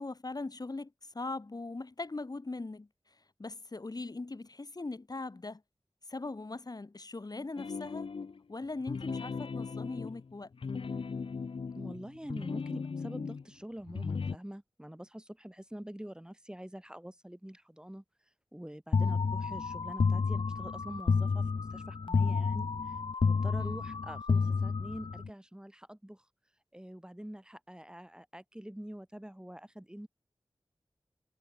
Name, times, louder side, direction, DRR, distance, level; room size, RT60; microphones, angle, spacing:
voice 1, 0.0-5.6 6.1-8.1 8.5-10.5 23.6-23.8, left 3 dB, 45° left, 4.0 m, -40 dB
sound 1, 7.6-8.4 8.8-13.4 13.8-14.4, left 5 dB, 85° left, 1.4 m, -38 dB
voice 2, 11.7-18.0 18.5-26.2 26.7-30.1, equal, 10° right, 5.7 m, -46 dB
sound 2, 18.9-25.3, left 4 dB, 65° left, 0.7 m, -30 dB
wide cardioid pair, 75°, 9 cm